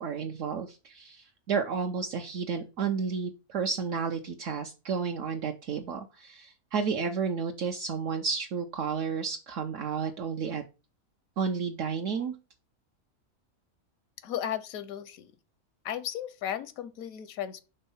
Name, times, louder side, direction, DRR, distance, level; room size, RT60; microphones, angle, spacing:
voice 1, 0.0-10.6 11.4-12.3, right 6 dB, 70° right, 0.9 m, -32 dB
voice 2, 14.2-15.3 15.8-17.6, left 10 dB, 80° left, 1.1 m, -35 dB
5.5 x 3.4 x 5.4 m
omnidirectional pair, 1.5 m